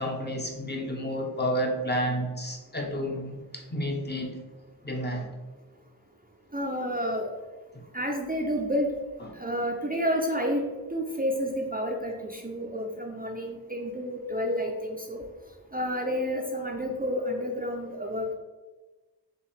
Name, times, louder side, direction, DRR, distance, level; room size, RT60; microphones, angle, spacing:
voice 1, 0.0-4.4 4.8-5.3 9.2-9.3, equal, 25° left, 0 dB, 0.7 m, -30 dB
voice 2, 6.5-7.3 7.9-8.9 9.4-10.6 10.9-15.2 15.7-18.3, equal, 20° right, 0 dB, 0.5 m, -30 dB
6.2 x 2.3 x 3.3 m, 1.2 s
wide cardioid pair, 65°, 41 cm